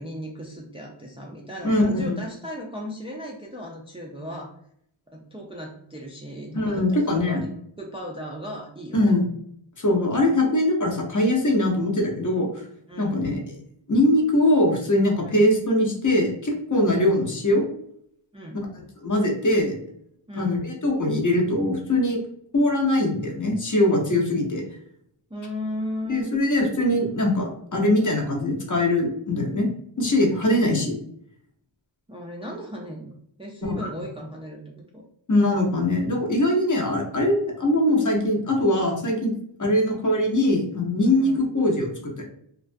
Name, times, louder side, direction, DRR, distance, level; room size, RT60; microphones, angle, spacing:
voice 1, 0.0-4.5 5.1-7.5 7.8-9.1 12.9-13.3 15.2-15.4 16.9-17.2 18.3-18.6 20.3-20.6 25.3-26.4 32.1-33.1 33.4-35.0 39.6-39.8 41.1-41.4, equal, 15° right, -1 dB, 0.4 m, -36 dB
voice 2, 1.6-2.2 6.5-7.4 8.9-9.3 9.8-12.6 13.0-13.5 13.9-17.6 19.0-19.7 20.3-22.2 22.5-24.6 26.1-29.7 30.0-31.0 35.3-39.3 39.6-42.2, left 1 dB, 40° left, 0 dB, 0.7 m, -22 dB
2.3 x 2.2 x 2.5 m, 0.68 s
wide cardioid pair, 65°, 48 cm